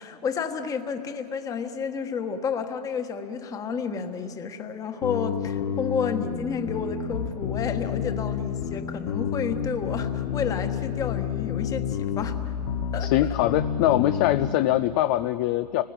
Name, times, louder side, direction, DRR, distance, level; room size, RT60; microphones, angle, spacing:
voice 1, 0.0-12.5 12.9-13.4, left 6 dB, 15° left, 7 dB, 1.4 m, -31 dB
sound 1, 5.0-14.5, left 8 dB, 50° left, 2.2 m, -29 dB
voice 2, 13.0-15.8, left 14 dB, 30° left, 11 dB, 0.5 m, -23 dB
29.0 x 20.0 x 8.9 m, 2.8 s
hypercardioid pair, 135°, 21 cm